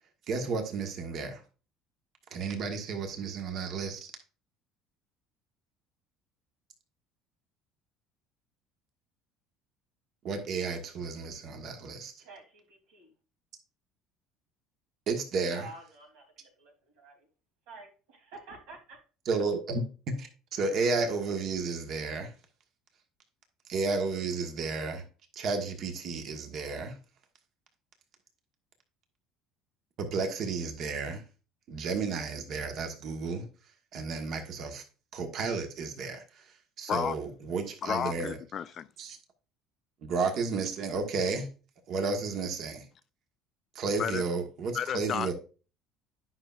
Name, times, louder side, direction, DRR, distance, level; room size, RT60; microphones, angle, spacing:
voice 1, 0.3-1.4 2.3-4.1 10.2-12.1 15.1-15.7 19.2-22.3 23.7-25.0 25.3-27.0 30.0-31.2 31.7-33.5 33.9-34.8 35.1-38.4 39.0-39.2 40.0-41.5 41.9-42.9 43.7-45.3, right 4 dB, 55° right, 1.4 m, -32 dB
voice 2, 12.2-13.1 15.5-17.3 17.7-19.0, right 3 dB, 80° right, 2.8 m, -50 dB
voice 3, 37.8-38.9 44.0-44.2 44.7-45.3, left 8 dB, 45° left, 0.4 m, -32 dB
9.6 x 5.8 x 2.4 m
supercardioid pair, 110°, 0 cm